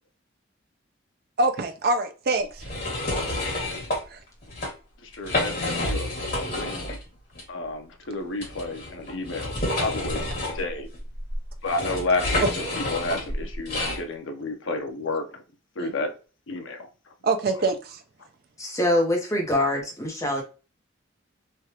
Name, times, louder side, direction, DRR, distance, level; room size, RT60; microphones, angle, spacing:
voice 1, 1.4-2.6 4.1-4.2 17.2-18.0, right 3 dB, 50° right, 0.4 m, -24 dB
sound 1, 2.6-4.0 4.4-4.7 5.1-7.0 7.3-7.4 8.4-14.0, left 2 dB, 45° left, 1.8 m, -29 dB
voice 2, 5.0-6.1 6.4-7.0 7.5-10.9 11.6-15.4 15.8-16.1 16.5-17.1 17.6-17.7, left 2 dB, 80° left, 0.7 m, -31 dB
voice 3, 18.6-20.4, left 1 dB, 15° left, 0.9 m, -24 dB
3.3 x 2.4 x 2.8 m
head